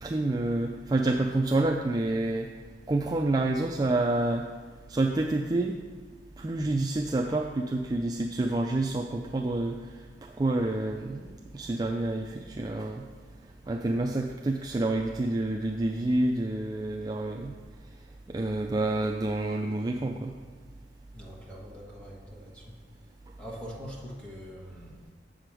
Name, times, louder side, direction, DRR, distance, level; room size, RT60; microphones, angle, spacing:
voice 1, 0.0-2.5 2.9-4.5 4.9-5.8 6.4-9.8 10.2-13.1 13.7-17.5 18.3-20.3, right 2 dB, 20° right, 1 dB, 0.3 m, -28 dB
voice 2, 21.1-22.8 23.4-25.1, equal, 5° left, -3 dB, 1.5 m, -44 dB
7.7 x 5.0 x 6.0 m, 1.5 s
head